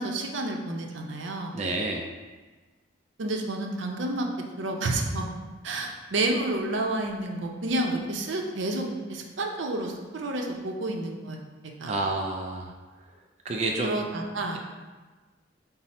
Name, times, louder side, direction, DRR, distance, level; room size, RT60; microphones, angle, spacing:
voice 1, 0.0-1.6 3.2-4.3 4.6-5.3 5.6-11.4 11.8-12.0 13.8-14.6, right 2 dB, 80° right, 2 dB, 0.6 m, -30 dB
voice 2, 1.5-2.1 11.9-12.7 13.5-14.0, right 2 dB, 35° right, 1 dB, 0.3 m, -29 dB
5.5 x 2.0 x 4.1 m, 1.3 s
head